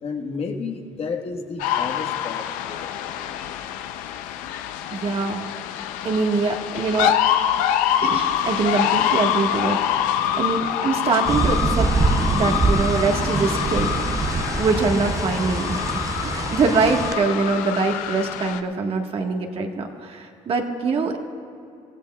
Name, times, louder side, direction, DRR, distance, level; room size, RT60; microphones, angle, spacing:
voice 1, 0.0-2.9, left 5 dB, 50° left, 2 dB, 1.5 m, -31 dB
sound 1, 1.6-18.6, left 10 dB, 85° left, 0.6 m, -25 dB
voice 2, 4.9-5.4 5.7-7.2 8.0-11.9 12.3-13.9 14.6-21.2, right 4 dB, 45° right, 3 dB, 1.5 m, -24 dB
sound 2, 11.3-17.1, right 3 dB, 25° right, 0.7 m, -24 dB
25.5 x 15.5 x 2.4 m, 2.6 s
supercardioid pair, 85°, 13 cm